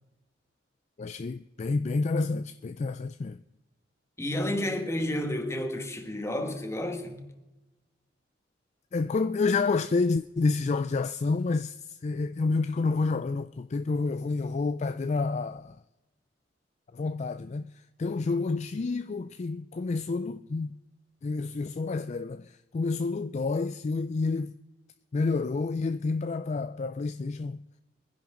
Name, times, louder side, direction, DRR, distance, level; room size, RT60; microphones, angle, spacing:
voice 1, 1.0-3.4 8.9-15.8 16.9-17.7 18.0-20.8 21.2-24.6 25.1-27.6, left 3 dB, 40° left, 0.4 m, -29 dB
voice 2, 4.2-7.2, left 1 dB, 15° left, 1.6 m, -31 dB
23.0 x 10.5 x 3.8 m
head